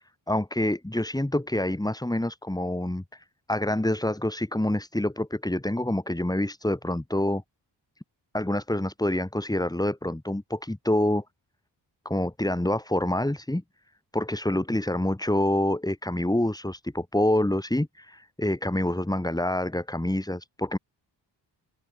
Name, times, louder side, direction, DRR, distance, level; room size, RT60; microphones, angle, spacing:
voice 1, 0.3-7.4 8.3-11.2 12.1-13.6 14.1-20.8, left 1 dB, 10° left, 5.3 m, -27 dB
open air
cardioid pair, 85°, 44 cm